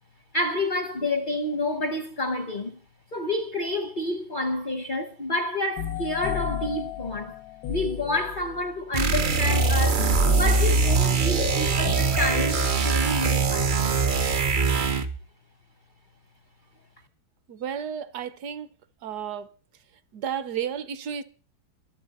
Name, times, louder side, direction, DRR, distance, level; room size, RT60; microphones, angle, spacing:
voice 1, 0.3-2.8 3.1-7.4 7.7-13.8, left 1 dB, 50° left, 0.6 m, -29 dB
sound 1, 5.8-8.8 10.0-13.3, left 10 dB, 80° left, 1.5 m, -34 dB
sound 2, 8.9-15.2, right 4 dB, 80° right, 0.4 m, -22 dB
voice 2, 17.5-18.7 19.0-19.5 20.1-21.2, right 8 dB, 65° right, 1.1 m, -32 dB
22.5 x 7.7 x 4.1 m
omnidirectional pair, 2.1 m